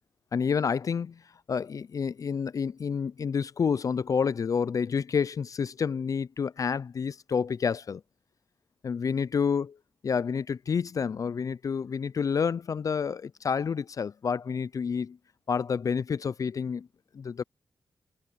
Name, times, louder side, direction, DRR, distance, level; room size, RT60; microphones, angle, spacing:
voice 1, 0.3-1.2 1.5-8.0 8.8-9.7 10.0-15.2 15.5-16.9 17.1-17.4, left 6 dB, 55° left, 0.4 m, -29 dB
cardioid pair, 65°, 7 cm